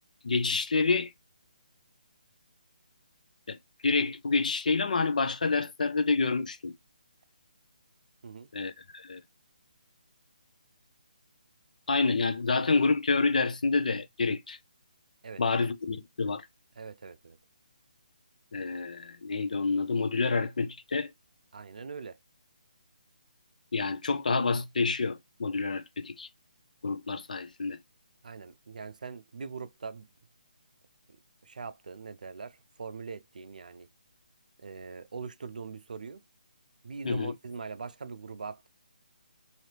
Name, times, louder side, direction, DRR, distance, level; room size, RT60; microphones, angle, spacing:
voice 1, 0.2-1.1 3.5-3.6 3.8-6.7 8.5-9.2 11.9-14.6 15.4-16.5 18.5-21.1 23.7-26.3 26.8-27.8 37.0-37.3, left 4 dB, 70° left, 0.5 m, -28 dB
voice 2, 15.2-15.7 16.8-17.4 21.5-22.2 28.2-30.1 31.4-33.9 34.6-36.2 36.8-38.7, right 5 dB, 70° right, 0.4 m, -42 dB
2.9 x 2.7 x 3.2 m
hypercardioid pair, 170°, 4 cm